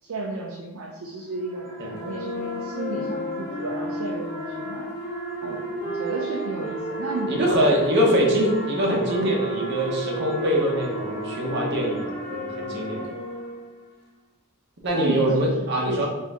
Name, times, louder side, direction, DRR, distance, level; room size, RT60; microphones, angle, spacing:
voice 1, 0.0-4.9 5.4-7.8 12.9-13.2 14.9-16.1, right 2 dB, 70° right, -3 dB, 0.5 m, -33 dB
sound 1, 1.1-13.9, right 2 dB, 5° left, 1.4 m, -37 dB
sound 2, 2.0-7.6 8.3-13.8, equal, 50° left, 0.8 m, -34 dB
voice 2, 7.3-13.0 14.8-16.1, equal, 50° right, -2 dB, 0.9 m, -23 dB
4.3 x 2.6 x 3.5 m, 1.2 s
head